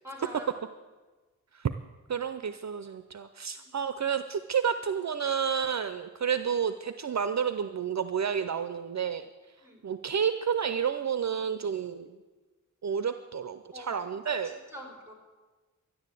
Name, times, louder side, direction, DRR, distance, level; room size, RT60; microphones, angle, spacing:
voice 1, 0.0-0.5 3.6-3.8 9.6-9.8 13.7-13.9 14.3-15.1, equal, 10° right, 1 dB, 3.9 m, -45 dB
voice 2, 2.1-9.3 9.8-12.1 12.8-14.6, right 7 dB, 60° right, 10 dB, 0.6 m, -30 dB
13.0 x 10.0 x 8.3 m, 1.3 s
wide cardioid pair, 105°, 32 cm